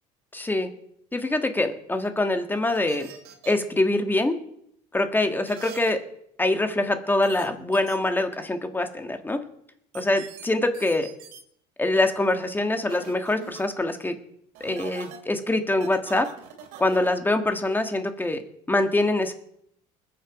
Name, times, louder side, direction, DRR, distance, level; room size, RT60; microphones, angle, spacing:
voice 1, 0.3-0.7 1.1-3.1 3.4-4.4 4.9-6.0 6.4-9.4 9.9-11.1 11.8-14.2 14.6-16.3 16.8-18.4 18.7-19.3, left 2 dB, 15° left, 7 dB, 1.7 m, -24 dB
sound 1, 2.7-3.5 5.5-5.9 7.2-7.4 7.7-7.9 9.9-10.5 10.7-11.4 12.9-13.6 14.5-15.2 15.8-17.1, right 9 dB, 75° right, 2.4 m, -43 dB
20.5 x 7.0 x 5.3 m, 0.72 s
supercardioid pair, 90°, 15 cm